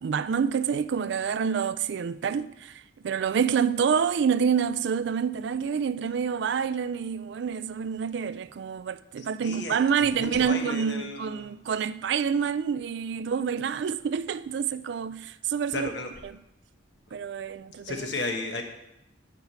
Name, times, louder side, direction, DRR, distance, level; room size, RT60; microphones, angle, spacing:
voice 1, 0.0-15.9 16.2-16.4 17.1-18.1, right 7 dB, 60° right, 0.3 m, -27 dB
voice 2, 9.2-11.5 15.7-16.1 17.8-18.6, left 3 dB, 60° left, 1.1 m, -34 dB
8.1 x 4.6 x 6.9 m
head